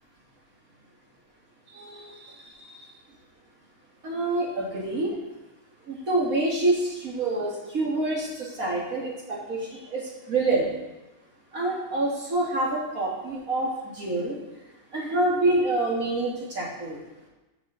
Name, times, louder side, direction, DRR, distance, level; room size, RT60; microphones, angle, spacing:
voice 1, 1.7-2.7 4.0-5.1 5.9-10.0 10.3-10.7 11.5-14.4 14.9-17.0, right 2 dB, 70° right, -4 dB, 2.4 m, -27 dB
14.0 x 6.1 x 3.9 m, 1.1 s
omnidirectional pair, 1.6 m